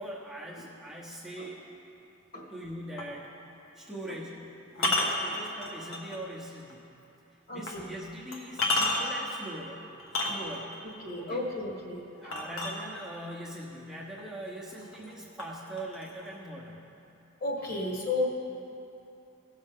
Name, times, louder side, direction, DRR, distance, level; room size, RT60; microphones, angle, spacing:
voice 1, 0.0-1.6 2.5-3.3 3.7-6.8 7.5-10.8 11.2-11.5 12.2-16.8, right 1 dB, ahead, -6 dB, 1.0 m, -42 dB
sound 1, 3.0-3.2 4.7-6.2 6.7-6.8 7.7-7.8 8.3-9.3 10.0-10.8 12.3-13.3 14.2-14.3 14.7-15.1 15.4-16.3, left 2 dB, 70° left, 1.2 m, -30 dB
voice 2, 7.5-7.8 11.0-12.4 17.4-18.3, left 2 dB, 45° left, -2 dB, 1.6 m, -33 dB
16.5 x 6.5 x 3.7 m, 2.8 s
head